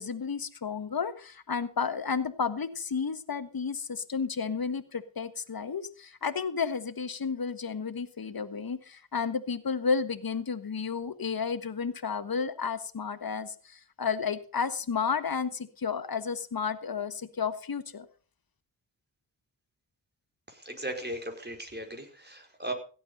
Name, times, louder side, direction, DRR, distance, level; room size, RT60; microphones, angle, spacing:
voice 1, 0.0-18.1, left 5 dB, 50° left, 12 dB, 1.6 m, -32 dB
voice 2, 20.5-22.7, right 1 dB, 20° right, 4 dB, 4.9 m, -37 dB
16.5 x 8.7 x 5.5 m, 0.39 s
cardioid pair, 45°, 46 cm